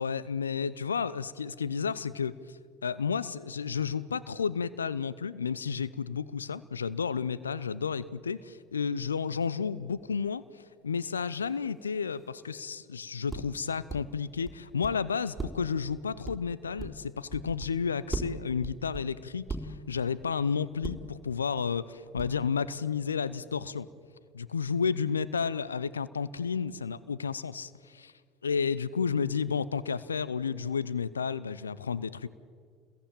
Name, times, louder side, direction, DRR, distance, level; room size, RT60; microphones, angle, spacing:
voice 1, 0.0-10.4 10.8-23.9 24.3-28.1 28.4-32.3, left 6 dB, 85° left, 17 dB, 0.7 m, -32 dB
sound 1, 5.7-5.8 10.0-10.2 12.5-12.7 13.3-14.0 14.4-14.9 15.4-17.8 18.1-19.9 20.8-21.2 22.2-22.5, right 3 dB, 15° right, 3.8 m, -39 dB
29.5 x 21.5 x 9.0 m, 2.1 s
figure-of-eight pair, 65°, 0 cm